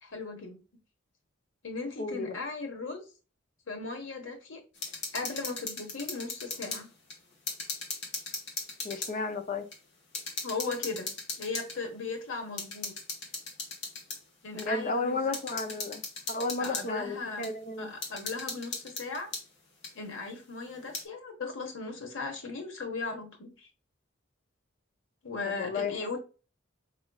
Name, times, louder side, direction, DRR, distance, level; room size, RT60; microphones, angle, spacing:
voice 1, 0.0-0.6 1.6-3.0 3.7-4.6 5.1-6.9 10.4-11.1 11.4-12.9 14.4-15.3 16.6-17.5 17.8-19.3 19.9-23.7 25.2-26.2, left 3 dB, 90° left, 1.2 m, -37 dB
voice 2, 2.0-2.4 8.8-9.6 14.5-16.0 16.3-17.9 25.4-25.9, left 3 dB, 40° left, 0.5 m, -33 dB
sound 1, 4.7-6.8 7.1-9.1 9.7-9.8 10.1-11.8 12.6-14.2 14.6-14.7 15.3-16.9 17.4-17.5 18.0-19.4 19.8-19.9 20.7-21.0, left 3 dB, 60° left, 1.3 m, -38 dB
5.0 x 3.1 x 2.3 m
head